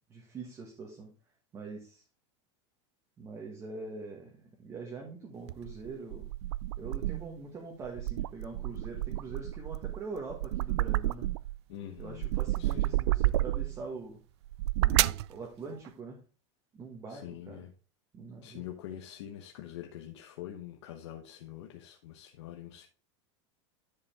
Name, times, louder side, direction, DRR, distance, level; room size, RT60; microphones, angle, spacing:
voice 1, 0.1-1.1 1.5-2.0 3.2-6.3 6.8-11.3 12.0-14.2 14.8-16.2 16.7-17.6 18.1-18.6, right 4 dB, 20° right, 1.6 m, -43 dB
sound 1, 5.5-7.4 7.8-11.6 12.0-13.8 14.5-15.3, right 16 dB, 65° right, 0.4 m, -30 dB
voice 2, 11.7-12.3 12.6-13.0 17.1-17.7 18.4-22.9, left 12 dB, 70° left, 1.1 m, -45 dB
10.5 x 5.5 x 3.5 m
supercardioid pair, 165°, 15 cm